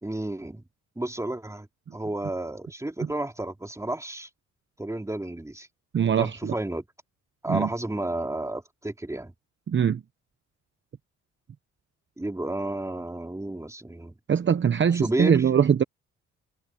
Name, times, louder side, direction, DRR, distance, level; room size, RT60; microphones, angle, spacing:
voice 1, 0.0-0.6 0.9-1.7 1.9-4.3 4.8-5.7 6.2-6.8 7.4-9.3 12.2-14.1 14.9-15.4, right 1 dB, 10° right, 3.4 m, -31 dB
voice 2, 5.9-6.5 7.5-7.7 9.7-10.0 14.3-15.8, right 7 dB, 40° right, 0.9 m, -22 dB
cardioid pair, 90°, 30 cm